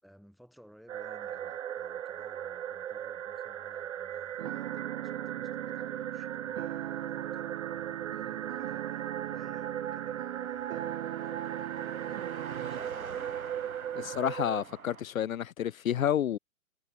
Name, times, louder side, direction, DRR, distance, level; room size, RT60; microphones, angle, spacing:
voice 1, 0.0-13.0, equal, ahead, 6.7 m, -59 dB
sound 1, 0.9-14.6, right 10 dB, 60° right, 1.1 m, -38 dB
sound 2, 4.4-12.8, right 14 dB, 40° right, 0.8 m, -40 dB
Car passing by, 4.9-15.0, right 5 dB, 80° right, 4.4 m, -49 dB
voice 2, 14.0-16.4, left 10 dB, 75° left, 0.7 m, -30 dB
figure-of-eight pair, 125°, 42 cm